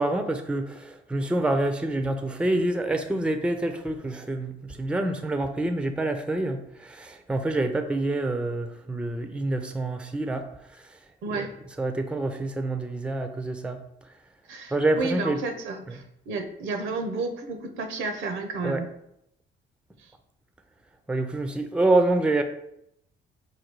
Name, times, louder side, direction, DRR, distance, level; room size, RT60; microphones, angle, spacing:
voice 1, 0.0-10.5 10.8-10.9 11.3-11.5 11.8-13.8 14.7-15.4 18.6-18.8 21.1-22.4, right 2 dB, 5° right, 7 dB, 0.4 m, -27 dB
voice 2, 11.2-11.5 14.5-18.9 20.0-20.1, right 3 dB, 80° right, 6 dB, 0.7 m, -32 dB
5.0 x 2.3 x 4.6 m, 0.78 s
cardioid pair, 90°, 20 cm